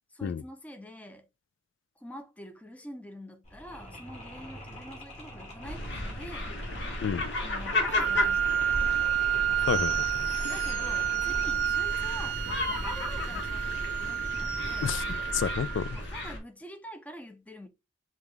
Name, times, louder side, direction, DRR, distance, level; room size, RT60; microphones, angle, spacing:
voice 1, 0.1-1.3 2.0-6.6 7.4-8.8 10.5-15.0 15.9-17.7, equal, 10° left, 0.5 m, -46 dB
Mechanisms, 3.4-13.2, equal, 40° left, 2.1 m, -46 dB
sound 1, 5.6-16.4, left 2 dB, 65° left, 1.0 m, -34 dB
Wind instrument woodwind instrument, 8.0-16.0, right 10 dB, 85° right, 0.4 m, -30 dB
voice 2, 9.7-10.3 14.8-15.0 15.3-16.0, left 7 dB, 90° left, 0.3 m, -30 dB
5.5 x 2.4 x 3.3 m
head